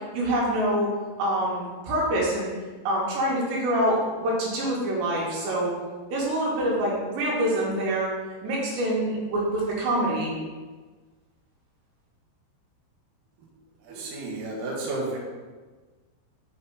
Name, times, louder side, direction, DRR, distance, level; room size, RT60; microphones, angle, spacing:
voice 1, 0.1-0.9 1.2-2.5 2.9-5.7 6.1-8.1 8.4-10.3, right 1 dB, 85° right, -4 dB, 4.1 m, -25 dB
voice 2, 13.8-15.2, right 2 dB, 60° right, -3 dB, 2.7 m, -32 dB
8.5 x 6.2 x 4.0 m, 1.3 s
omnidirectional pair, 5.0 m